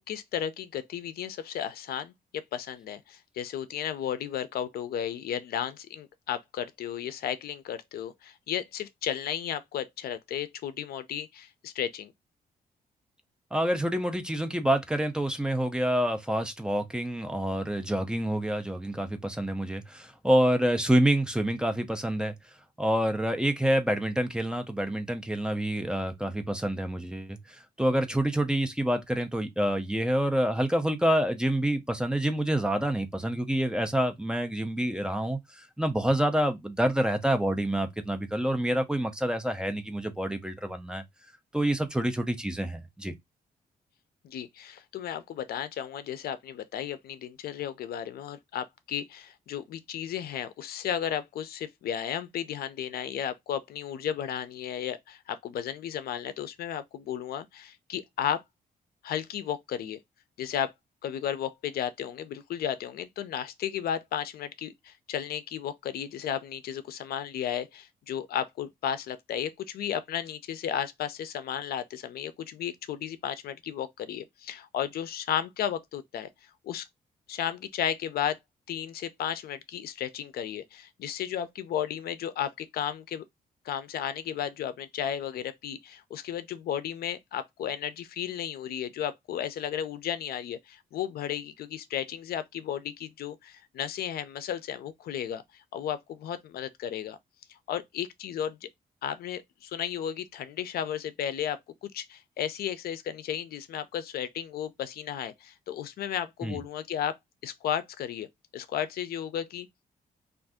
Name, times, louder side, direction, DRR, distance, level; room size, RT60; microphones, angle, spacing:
voice 1, 0.1-12.1 44.2-58.4 59.0-60.0 60.4-60.7 61.0-76.3 76.6-76.9 77.3-78.4 78.7-83.2 83.6-97.2 97.5-98.7 99.0-107.1 107.4-109.7, left 9 dB, 85° left, 0.4 m, -34 dB
voice 2, 13.5-22.3 22.8-41.0 41.5-43.1 106.4-106.6, right 1 dB, 5° right, 0.4 m, -27 dB
2.6 x 2.4 x 3.4 m
wide cardioid pair, 155°, 15 cm